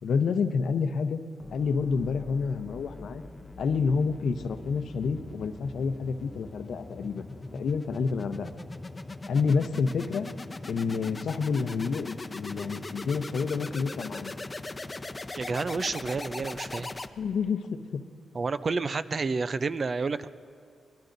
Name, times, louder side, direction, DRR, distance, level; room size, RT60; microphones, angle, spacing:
voice 1, 0.0-1.2 1.5-3.2 3.6-7.3 7.5-8.5 9.3-10.3 10.7-14.3 17.2-18.0, left 5 dB, 75° left, 8 dB, 0.8 m, -28 dB
sound 1, 1.4-17.5, left 2 dB, 25° left, 0.7 m, -41 dB
voice 2, 15.4-16.9 18.3-20.3, right 4 dB, 45° right, 13 dB, 0.5 m, -30 dB
23.5 x 21.0 x 2.7 m, 2.3 s
cardioid pair, 75°, 0 cm